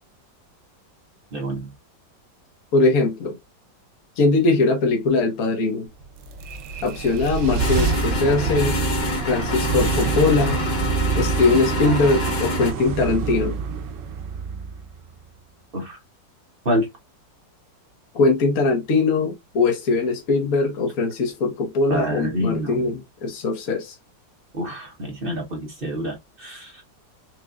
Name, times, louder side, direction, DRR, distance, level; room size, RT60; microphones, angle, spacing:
voice 1, 1.3-1.7 15.7-16.0 16.6-16.9 21.9-22.9 24.5-26.8, equal, 40° right, 1.0 m, -27 dB
voice 2, 2.7-3.4 4.2-5.9 6.8-8.8 9.3-10.6 11.2-13.6 18.1-23.9, left 3 dB, 55° left, 1.4 m, -21 dB
sound 1, 6.0-15.3, right 6 dB, 80° right, 1.3 m, -26 dB
sound 2, 7.6-12.7, left 3 dB, 40° left, 1.1 m, -27 dB
5.0 x 2.5 x 2.3 m
omnidirectional pair, 1.9 m